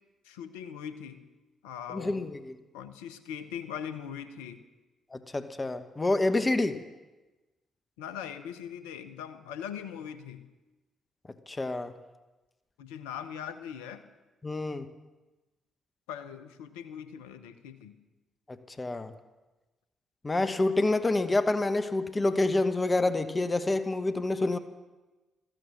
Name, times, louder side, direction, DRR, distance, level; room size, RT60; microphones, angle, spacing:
voice 1, 0.2-1.2 1.6-2.3 2.7-4.6 8.0-10.5 12.8-14.0 16.1-17.9, left 8 dB, 75° left, 11 dB, 0.8 m, -40 dB
voice 2, 1.9-2.6 5.1-6.8 11.5-11.9 14.4-14.9 18.5-19.1 20.2-24.6, left 2 dB, 25° left, 11 dB, 1.1 m, -28 dB
15.5 x 14.0 x 6.3 m, 1.2 s
figure-of-eight pair, 40°, 0 cm